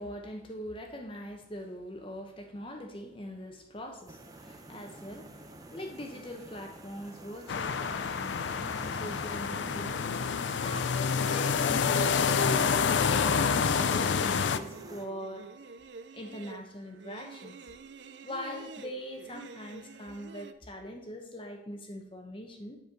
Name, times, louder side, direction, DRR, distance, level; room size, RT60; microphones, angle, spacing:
voice 1, 0.0-10.1 10.6-10.9 11.3-12.5 13.1-15.5 16.1-17.6 18.2-22.8, left 1 dB, 30° left, 3 dB, 0.9 m, -42 dB
sound 1, 4.1-15.1, right 1 dB, 20° right, 0.6 m, -48 dB
sound 2, 7.5-14.6, left 6 dB, 75° left, 0.4 m, -28 dB
sound 3, 13.7-20.5, right 4 dB, 75° right, 0.5 m, -48 dB
8.0 x 4.4 x 6.5 m, 0.87 s
head